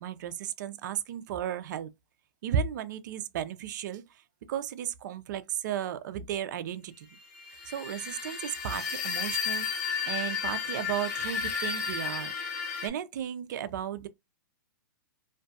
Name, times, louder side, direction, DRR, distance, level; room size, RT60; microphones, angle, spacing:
voice 1, 0.0-1.9 2.4-4.0 4.5-7.1 7.7-12.3 12.8-14.1, right 9 dB, 55° right, 0.4 m, -34 dB
sound 1, 7.5-12.9, left 6 dB, 50° left, 0.9 m, -33 dB
2.5 x 2.2 x 2.6 m
hypercardioid pair, 140°, 12 cm